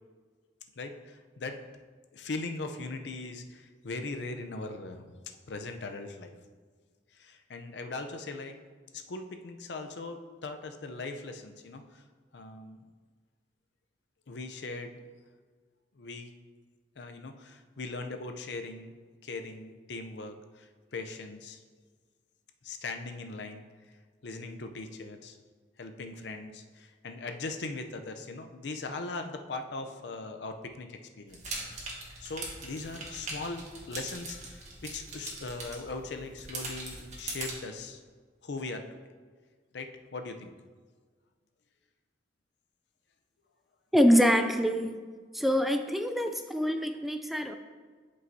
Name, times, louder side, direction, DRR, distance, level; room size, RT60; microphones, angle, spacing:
voice 1, 0.8-1.6 2.1-5.2 5.5-6.3 7.1-8.6 8.9-12.0 12.3-12.8 14.3-15.0 16.0-16.3 17.0-18.9 19.2-21.6 22.6-23.7 24.2-25.4 25.8-31.6 32.2-38.0 38.4-38.8 39.7-40.5, left 3 dB, 75° left, 6 dB, 0.6 m, -40 dB
sound 1, 31.3-37.5, right 2 dB, 40° right, 1.5 m, -41 dB
voice 2, 43.9-44.9 45.3-47.5, equal, ahead, 7 dB, 0.3 m, -25 dB
11.0 x 5.4 x 2.7 m, 1.5 s
head